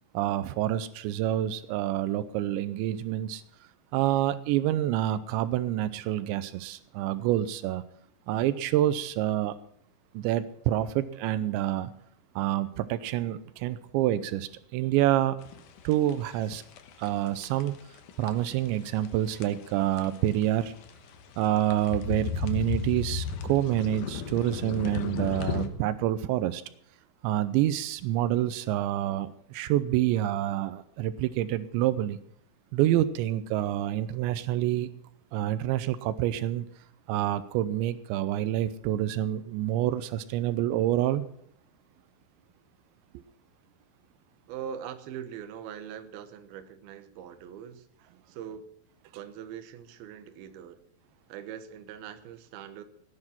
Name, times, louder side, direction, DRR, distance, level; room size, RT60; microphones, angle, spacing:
voice 1, 0.1-3.4 3.9-7.8 8.3-9.6 10.1-11.9 12.4-15.4 15.8-16.6 17.0-17.7 18.2-20.7 21.4-26.6 27.2-32.2 32.7-34.9 35.3-36.7 37.1-41.2, right 13 dB, 90° right, 13 dB, 3.0 m, -27 dB
sound 1, 15.4-25.7, left 6 dB, 70° left, 2.0 m, -35 dB
voice 2, 44.5-48.7 49.1-50.8 51.3-52.8, right 9 dB, 70° right, 9 dB, 2.8 m, -42 dB
17.0 x 9.8 x 6.0 m, 0.66 s
omnidirectional pair, 5.1 m